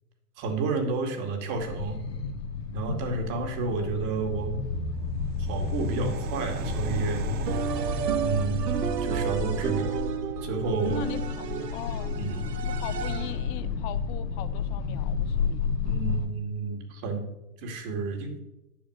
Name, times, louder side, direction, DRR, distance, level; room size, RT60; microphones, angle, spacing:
voice 1, 0.4-2.0 2.7-4.6 5.4-7.2 8.2-10.0 10.4-11.1 12.2-12.5 15.9-17.3 17.6-18.3, right 4 dB, 40° right, 4 dB, 2.5 m, -30 dB
sound 1, 1.5-16.3, left 5 dB, 75° left, 1.8 m, -32 dB
voice 2, 3.7-4.2 10.9-11.4 11.7-12.1 12.7-15.7, left 14 dB, 35° left, 11 dB, 0.7 m, -40 dB
sound 2, 4.3-9.8, right 5 dB, 20° right, 0.7 m, -36 dB
sound 3, 7.5-13.5, right 8 dB, 80° right, 1.3 m, -32 dB
10.5 x 6.6 x 6.6 m, 0.91 s
hypercardioid pair, 120°, 48 cm